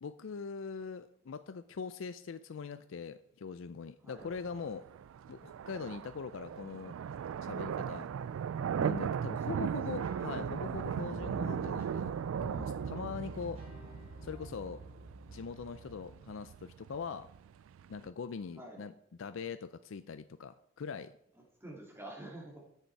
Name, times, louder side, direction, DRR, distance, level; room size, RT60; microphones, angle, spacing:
voice 1, 0.0-4.8 5.3-6.9 7.4-8.1 8.8-12.1 12.4-13.6 14.2-14.8 15.3-17.3 17.9-18.9 19.2-21.1, left 5 dB, 75° left, 11 dB, 0.4 m, -42 dB
voice 2, 4.0-4.3 9.2-10.2 13.8-13.9 18.6-18.8 21.4-22.7, right 1 dB, 10° right, -2 dB, 2.4 m, -49 dB
sound 1, 4.2-18.1, right 7 dB, 85° right, 0.3 m, -38 dB
sound 2, 9.6-16.2, equal, 30° right, 4.5 m, -50 dB
13.5 x 6.7 x 4.6 m, 0.72 s
head